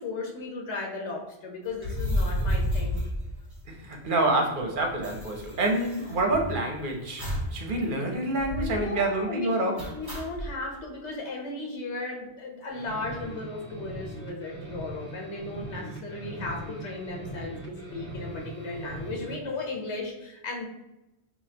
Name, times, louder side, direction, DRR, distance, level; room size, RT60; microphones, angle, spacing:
voice 1, 0.0-3.0 8.4-20.7, left 2 dB, 85° left, 0 dB, 1.1 m, -36 dB
sound 1, 1.7-4.0 4.3-4.4 4.6-6.7 7.2-7.6 7.9-8.0 8.4-8.9 9.8-10.5, equal, 20° right, 1.2 m, -31 dB
voice 2, 3.7-9.8, right 2 dB, 55° right, 3 dB, 0.8 m, -27 dB
sound 2, 12.7-19.4, right 1 dB, 55° left, 1.4 m, -40 dB
5.0 x 2.5 x 2.8 m, 0.95 s
omnidirectional pair, 1.1 m